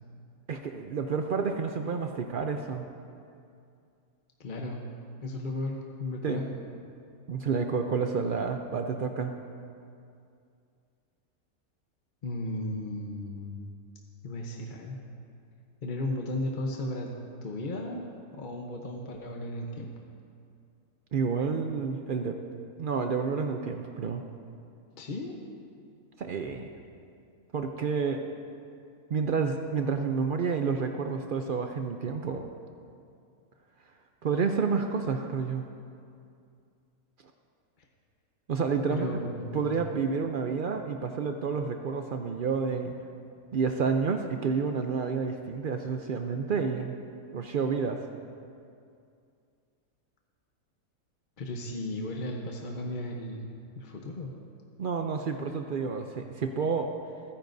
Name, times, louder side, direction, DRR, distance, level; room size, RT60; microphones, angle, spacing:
voice 1, 0.5-2.9 6.2-6.4 7.3-9.3 21.1-22.4 22.8-24.2 26.2-26.7 27.5-28.2 29.1-32.5 34.2-35.6 38.5-39.1 39.5-42.9 43.5-46.9 47.3-48.0 54.8-56.9, right 5 dB, 85° right, 5 dB, 0.4 m, -29 dB
voice 2, 4.4-4.8 5.2-6.5 12.2-13.7 14.2-15.0 15.8-17.1 17.4-18.1 18.3-19.9 25.0-25.3 38.9-39.8 51.4-53.5 53.7-54.3, left 1 dB, 40° left, 0 dB, 0.9 m, -35 dB
28.0 x 10.0 x 2.6 m, 2.4 s
omnidirectional pair, 1.6 m